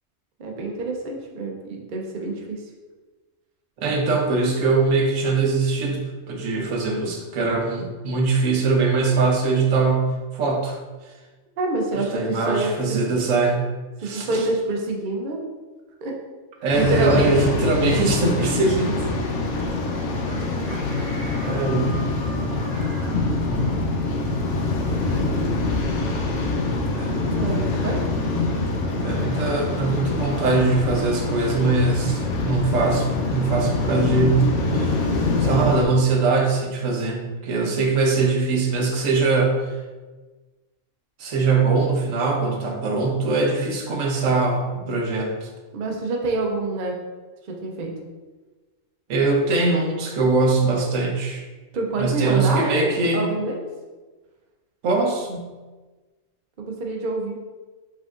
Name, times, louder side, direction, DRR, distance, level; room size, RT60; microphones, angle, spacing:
voice 1, 0.4-2.6 11.6-13.0 14.0-15.4 16.0-16.1 16.7-17.3 23.1-23.2 27.4-28.0 37.6-37.9 45.7-47.0 47.5-47.9 51.7-53.6 56.6-57.4, right 2 dB, 50° right, 0 dB, 0.7 m, -27 dB
voice 2, 3.8-10.8 11.9-13.7 14.0-14.4 16.6-19.0 20.6-20.8 21.4-22.1 26.9-27.3 29.0-35.0 35.4-39.7 41.2-45.5 49.1-51.4 52.0-53.4 54.8-55.5, right 3 dB, 85° right, 0 dB, 1.1 m, -22 dB
Waves surf, 16.7-35.8, left 3 dB, 70° left, 1.0 m, -25 dB
Chicken rooster, 20.3-23.2, equal, 20° right, 1.3 m, -40 dB
4.9 x 3.6 x 2.4 m, 1.3 s
omnidirectional pair, 1.3 m